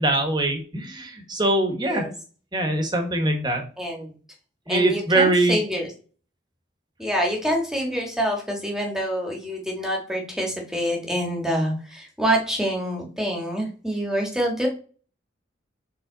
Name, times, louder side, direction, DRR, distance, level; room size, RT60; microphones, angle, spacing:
voice 1, 0.0-2.0 2.5-3.6 4.7-5.6, right 2 dB, 25° right, 4 dB, 1.2 m, -22 dB
voice 2, 3.8-4.1 4.7-5.9 7.0-14.7, equal, 5° right, 1 dB, 1.5 m, -26 dB
6.9 x 3.7 x 3.9 m, 0.40 s
head